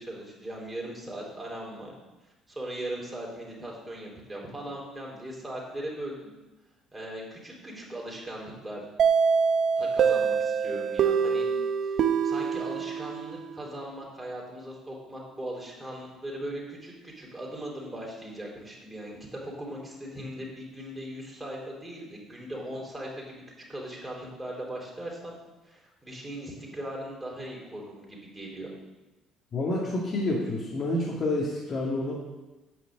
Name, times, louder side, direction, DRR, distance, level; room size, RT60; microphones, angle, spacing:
voice 1, 0.0-1.9 2.5-6.3 6.9-8.9 9.8-11.5 11.8-23.4 23.7-25.4 25.6-28.7, right 1 dB, 10° right, -3 dB, 4.1 m, -39 dB
sound 1, 9.0-13.7, right 6 dB, 55° right, 0.8 m, -25 dB
voice 2, 29.5-32.1, left 2 dB, 45° left, -5 dB, 2.3 m, -28 dB
9.3 x 5.8 x 8.0 m, 1.1 s
supercardioid pair, 90°, 0 cm